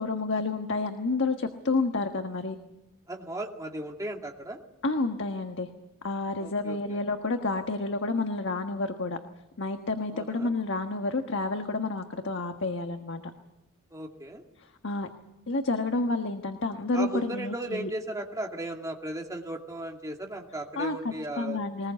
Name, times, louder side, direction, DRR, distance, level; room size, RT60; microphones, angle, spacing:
voice 1, 0.0-2.6 4.8-5.7 6.0-9.2 9.6-13.2 14.6-15.1 15.5-17.9 20.8-21.0 21.4-21.9, left 3 dB, 55° left, 6 dB, 1.4 m, -29 dB
voice 2, 3.1-4.6 6.4-7.0 10.1-10.5 13.9-14.4 16.9-21.6, right 1 dB, 15° right, 1 dB, 2.5 m, -36 dB
22.0 x 20.5 x 8.3 m, 0.90 s
head